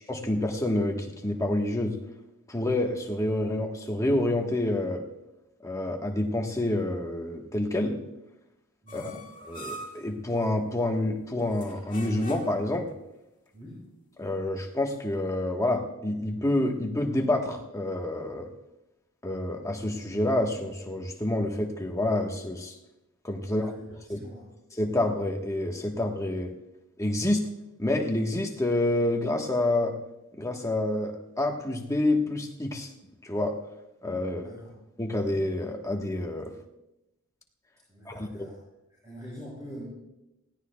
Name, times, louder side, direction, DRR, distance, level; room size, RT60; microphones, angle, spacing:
voice 1, 0.1-2.0 2.5-5.0 5.6-8.0 8.9-9.1 9.5-12.9 14.2-18.5 19.2-22.8 23.2-23.7 24.1-24.2 24.8-26.5 27.0-27.4 27.8-30.0 30.4-32.9 33.2-33.6 34.0-34.5 35.0-36.5 38.1-38.5, left 1 dB, 15° left, 2 dB, 1.2 m, -28 dB
voice 2, 8.8-9.2 13.5-13.8 23.4-24.5 34.2-34.7 37.9-38.6 38.9-39.8, equal, 15° right, -8 dB, 5.8 m, -45 dB
sound 1, 8.9-10.1 11.5-12.7, right 1 dB, 40° left, 1.9 m, -42 dB
20.5 x 16.5 x 2.3 m, 0.93 s
head